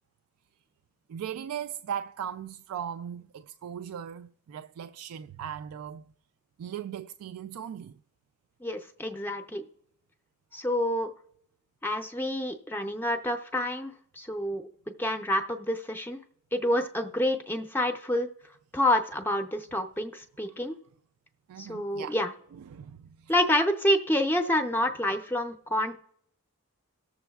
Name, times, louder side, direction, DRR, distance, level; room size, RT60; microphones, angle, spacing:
voice 1, 1.1-6.0 6.6-8.0 20.4-20.5 21.5-22.2 22.5-23.3, right 9 dB, 80° right, 0.3 m, -38 dB
voice 2, 8.6-9.6 10.5-11.1 11.8-14.6 15.0-16.2 16.5-18.3 18.7-20.8 21.6-22.3 23.3-26.0, left 1 dB, 10° left, 0.5 m, -28 dB
18.5 x 7.0 x 2.3 m
head